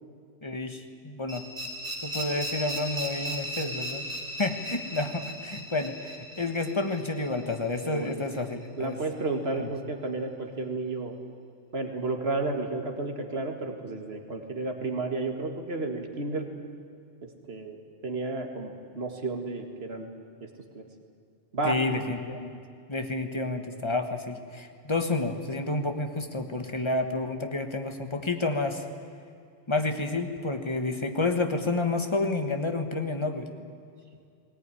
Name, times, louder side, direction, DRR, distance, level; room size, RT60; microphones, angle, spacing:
voice 1, 0.4-1.4 2.0-4.0 4.4-9.0 9.5-9.7 21.6-22.6 22.9-28.8 29.7-33.5, left 2 dB, 25° left, 6 dB, 1.4 m, -30 dB
sound 1, 1.3-8.1, equal, 30° right, 3.6 m, -37 dB
voice 2, 7.9-8.2 8.7-11.2 11.7-16.5 17.5-17.8 18.0-20.1 20.4-20.5 20.7-20.9 21.5-21.8, right 3 dB, 65° right, 4 dB, 2.2 m, -32 dB
18.5 x 18.0 x 9.9 m, 2.3 s
omnidirectional pair, 1.2 m